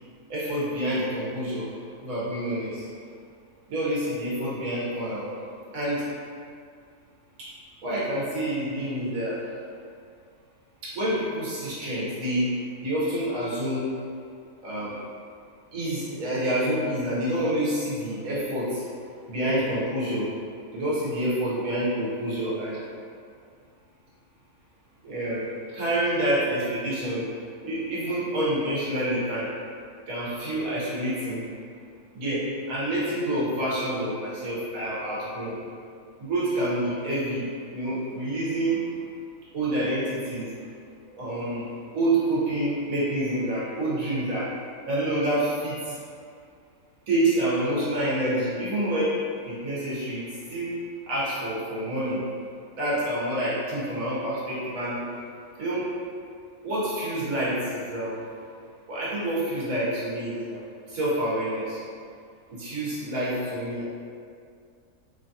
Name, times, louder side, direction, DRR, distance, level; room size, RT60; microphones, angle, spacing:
voice 1, 0.3-1.7 2.0-2.9 3.7-5.3 5.7-6.0 7.4-7.5 7.8-9.5 10.8-12.5 12.8-13.9 14.6-14.9 15.7-18.9 19.3-20.3 20.7-22.8 25.0-27.3 27.6-29.5 30.1-31.4 32.1-35.6 36.2-38.8 39.5-40.6 41.2-41.7 41.9-44.5 44.9-46.0 47.1-49.2 49.4-50.2 50.5-50.8 51.1-52.2 52.7-55.0 55.6-55.9 56.6-58.2 58.9-60.6 60.9-61.8 62.5-63.9, right 1 dB, 80° right, -9 dB, 1.3 m, -27 dB
3.1 x 2.3 x 2.6 m, 2.3 s
omnidirectional pair, 1.5 m